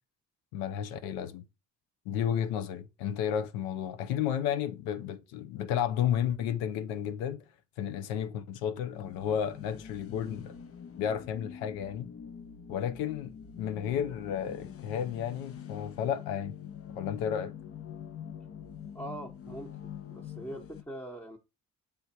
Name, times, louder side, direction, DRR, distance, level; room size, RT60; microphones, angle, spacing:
voice 1, 0.5-1.4 2.1-7.5 7.8-10.5 11.0-12.1 12.7-13.3 13.6-16.5 16.9-17.5, left 9 dB, 90° left, 0.7 m, -32 dB
sound 1, 8.9-20.8, left 8 dB, 40° left, 0.8 m, -45 dB
voice 2, 18.9-19.8 20.1-21.4, right 1 dB, 5° left, 1.0 m, -42 dB
6.6 x 3.6 x 4.3 m
supercardioid pair, 60°, 36 cm